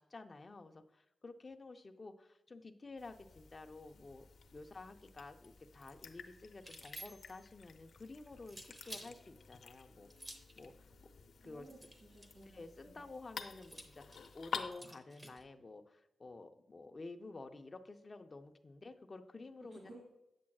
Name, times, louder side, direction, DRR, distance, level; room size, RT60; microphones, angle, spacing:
voice 1, 0.0-4.2 4.5-10.1 10.6-11.1 11.4-11.7 12.5-19.9, left 3 dB, 30° left, 6 dB, 0.5 m, -51 dB
sound 1, 3.0-14.7, left 6 dB, 70° left, 0.6 m, -51 dB
sound 2, 6.6-7.5 8.5-9.1 10.1-10.6 11.7-12.4 13.6-15.4, right 1 dB, 20° right, 0.8 m, -52 dB
voice 2, 11.4-13.0 19.6-20.0, right 2 dB, 90° right, -5 dB, 2.1 m, -57 dB
8.4 x 7.3 x 2.3 m, 0.89 s
wide cardioid pair, 160°, 0 cm